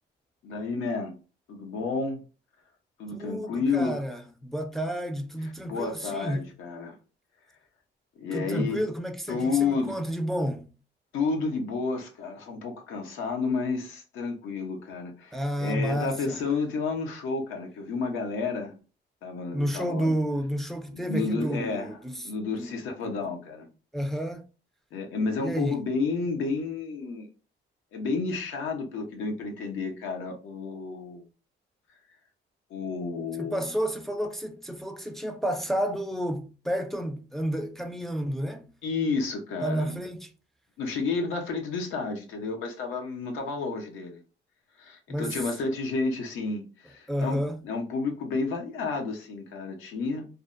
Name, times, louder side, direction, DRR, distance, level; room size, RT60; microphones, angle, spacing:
voice 1, 0.4-1.2 1.5-2.2 3.0-4.0 5.6-6.9 8.2-8.8 9.3-10.0 11.1-18.8 19.2-20.1 20.9-22.0 22.2-23.7 24.9-27.3 27.9-31.2 32.7-33.7 38.8-40.0 40.8-44.2 44.8-50.3, left 4 dB, 90° left, 0.7 m, -31 dB
voice 2, 3.1-6.5 8.3-10.7 15.3-16.4 19.5-22.8 23.0-23.1 23.9-24.5 25.4-25.8 33.4-38.7 39.6-40.3 45.1-45.4 47.1-47.6, equal, ahead, 0.3 m, -31 dB
2.5 x 2.1 x 2.4 m
cardioid pair, 90°, 20 cm